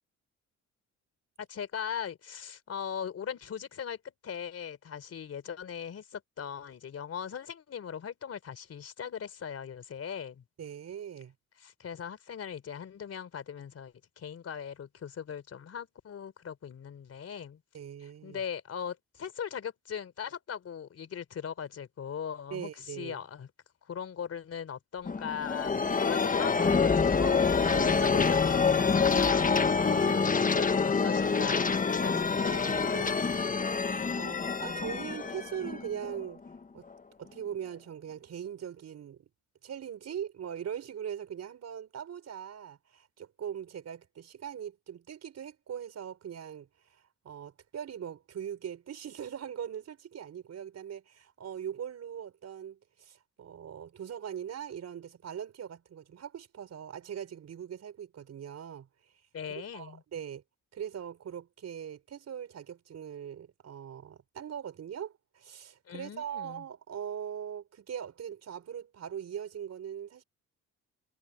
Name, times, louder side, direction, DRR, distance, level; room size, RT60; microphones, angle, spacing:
voice 1, 1.4-10.4 11.6-17.6 18.0-23.5 23.9-32.8 33.4-33.5 59.3-60.0 65.9-66.6, left 8 dB, 55° left, 3.6 m, -39 dB
voice 2, 10.6-11.3 17.7-18.4 22.5-23.2 27.7-28.2 29.8-30.5 32.0-33.3 34.1-36.4 36.7-36.9 37.2-39.3 39.6-46.7 47.2-58.9 59.5-60.4 60.7-70.2, right 9 dB, 60° right, 5.6 m, -41 dB
sound 1, 25.1-36.6, left 5 dB, 25° left, 1.4 m, -27 dB
cardioid pair, 90°, 30 cm